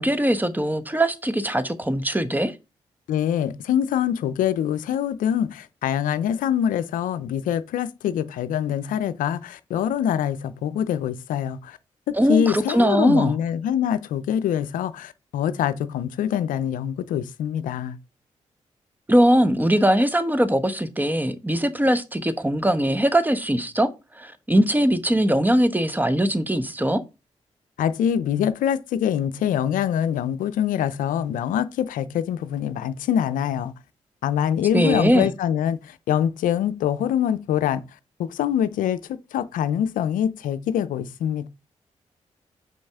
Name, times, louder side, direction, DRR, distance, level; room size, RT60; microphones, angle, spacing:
voice 1, 0.0-2.5 12.1-13.4 19.1-23.9 24.2-27.0 34.7-35.3, equal, 15° right, 1.0 m, -21 dB
voice 2, 3.1-11.8 12.3-18.0 27.8-33.7 34.2-37.8 38.2-39.0 39.3-41.5, left 9 dB, 85° left, 0.4 m, -24 dB
5.7 x 5.3 x 3.5 m
supercardioid pair, 40°, 14 cm